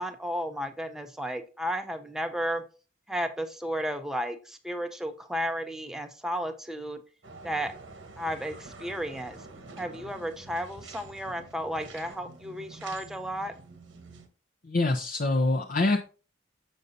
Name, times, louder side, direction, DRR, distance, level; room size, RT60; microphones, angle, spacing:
voice 1, 0.0-2.6 3.1-7.0 7.4-7.7 8.2-9.4 9.8-13.5, equal, 5° right, 6 dB, 0.5 m, -33 dB
sound 1, 7.2-14.3, right 3 dB, 90° right, 1.1 m, -47 dB
voice 2, 14.6-16.0, left 2 dB, 45° left, 6 dB, 0.5 m, -25 dB
6.6 x 6.3 x 2.7 m, 0.35 s
head